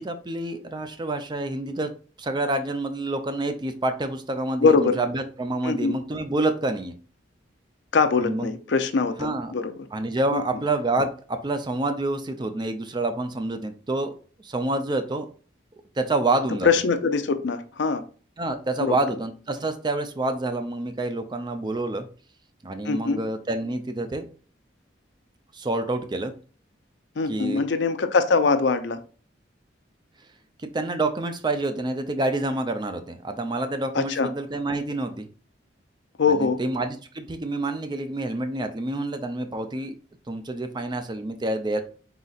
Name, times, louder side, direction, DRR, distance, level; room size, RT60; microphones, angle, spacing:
voice 1, 0.0-1.9 2.2-6.9 8.2-8.5 9.2-9.5 9.9-14.1 14.4-15.3 16.0-16.7 18.4-22.1 22.6-24.3 25.5-26.3 27.3-27.6 30.7-35.3 36.3-40.0 40.3-41.8, right 2 dB, 25° right, 7 dB, 0.4 m, -27 dB
voice 2, 4.6-5.0 5.6-6.0 7.9-9.7 10.3-10.4 16.6-18.0 18.8-18.9 22.8-23.2 27.2-29.0 33.9-34.3 36.2-36.6, left 4 dB, 70° left, 10 dB, 0.5 m, -22 dB
4.0 x 3.9 x 2.4 m, 0.38 s
head